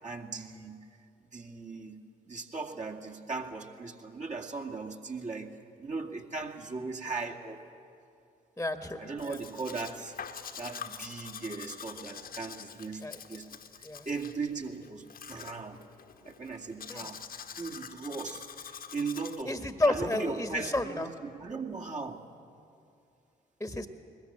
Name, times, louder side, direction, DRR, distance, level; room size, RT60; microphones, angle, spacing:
voice 1, 0.0-0.8 1.3-2.0 2.3-5.5 5.8-7.6 9.0-10.1 10.6-13.0 13.3-13.5 14.1-15.8 16.2-17.2 17.6-19.6 19.9-22.2, right 4 dB, 35° right, 1 dB, 2.4 m, -38 dB
voice 2, 8.6-9.0 9.3-9.4 13.0-13.2 13.8-14.1 16.9-17.1 19.4-21.1 23.6-23.9, left 2 dB, 10° left, 7 dB, 1.5 m, -31 dB
Domestic sounds home sounds, 9.2-19.4, left 7 dB, 45° left, 1.3 m, -45 dB
21.0 x 21.0 x 8.8 m, 2.6 s
figure-of-eight pair, 40°, 20 cm